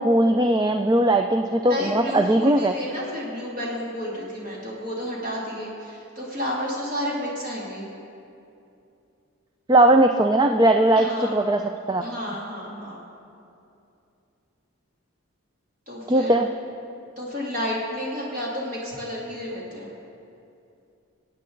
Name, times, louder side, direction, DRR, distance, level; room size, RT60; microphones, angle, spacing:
voice 1, 0.0-2.7 9.7-12.0 16.1-16.5, right 1 dB, 20° right, 5 dB, 0.3 m, -19 dB
voice 2, 1.6-7.9 11.0-11.3 12.0-13.1 15.9-16.4 17.2-19.9, equal, 40° right, -5 dB, 2.4 m, -31 dB
25.0 x 8.6 x 3.9 m, 2.6 s
head